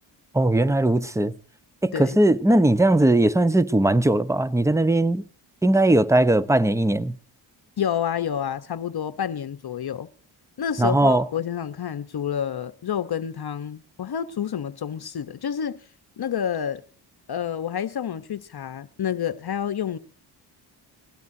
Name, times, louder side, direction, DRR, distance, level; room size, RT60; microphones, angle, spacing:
voice 1, 0.3-1.3 1.8-5.2 5.6-7.1 10.8-11.2, right 1 dB, 5° right, 0.9 m, -19 dB
voice 2, 7.8-10.1 10.6-15.8 16.2-16.8 17.3-20.0, left 8 dB, 50° left, 1.0 m, -29 dB
21.0 x 17.0 x 2.7 m
cardioid pair, 70°, 49 cm